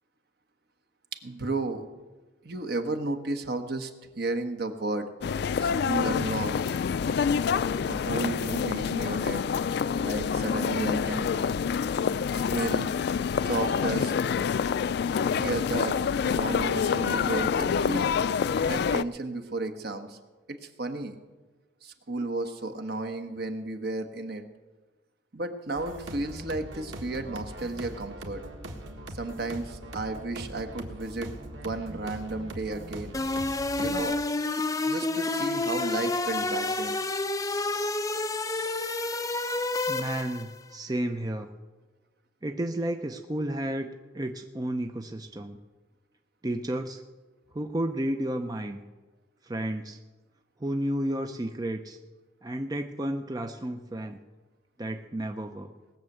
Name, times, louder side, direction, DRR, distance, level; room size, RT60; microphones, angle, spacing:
voice 1, 1.2-1.9 2.4-5.1 5.6-6.8 7.9-9.4 10.0-11.3 12.3-12.9 13.4-14.1 15.3-16.0 16.2-18.2 18.7-20.2 20.6-21.2 21.8-24.4 25.3-28.4 29.1-33.1 33.8-34.2 34.9-37.0, right 2 dB, 55° right, 6 dB, 1.2 m, -33 dB
sound 1, 5.2-19.0, left 6 dB, 60° left, 0.3 m, -27 dB
sound 2, 25.8-34.0, right 1 dB, 90° right, 1.7 m, -41 dB
sound 3, 33.1-40.6, left 2 dB, 20° left, 0.6 m, -29 dB
voice 2, 39.9-41.5 42.4-45.6 46.4-47.0 47.5-48.8 49.4-50.0 50.6-52.0 52.4-54.2 54.8-55.7, right 1 dB, 20° right, 5 dB, 0.6 m, -32 dB
19.0 x 6.6 x 7.9 m, 1.2 s
head